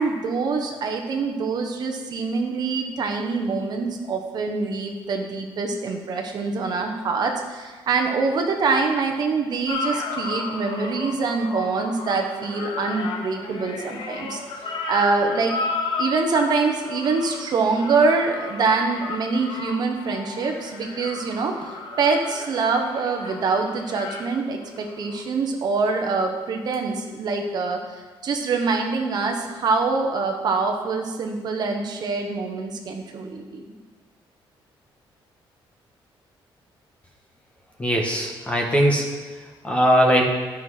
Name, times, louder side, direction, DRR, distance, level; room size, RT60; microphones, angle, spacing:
voice 1, 0.0-15.6 16.0-33.7, right 4 dB, 50° right, 3 dB, 1.0 m, -25 dB
sound 1, 9.7-25.2 26.7-26.8, left 3 dB, 65° left, 1.1 m, -33 dB
voice 2, 37.8-39.1 39.6-40.2, equal, 15° left, 1 dB, 1.2 m, -19 dB
12.0 x 5.9 x 4.9 m, 1.3 s
cardioid pair, 165°, 9 cm